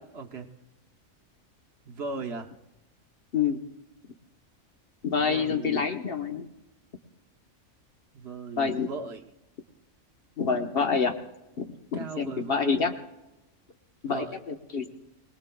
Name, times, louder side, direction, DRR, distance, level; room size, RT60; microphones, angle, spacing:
voice 1, 0.1-0.5 1.9-2.5 5.1-5.8 8.1-9.2 11.9-12.6 14.0-14.4, right 4 dB, 50° right, 4 dB, 1.1 m, -37 dB
voice 2, 5.0-6.5 8.6-8.9 10.4-11.2 11.6-12.9 14.0-14.9, left 5 dB, 45° left, 5 dB, 1.1 m, -27 dB
24.5 x 19.0 x 2.3 m, 0.98 s
omnidirectional pair, 1.4 m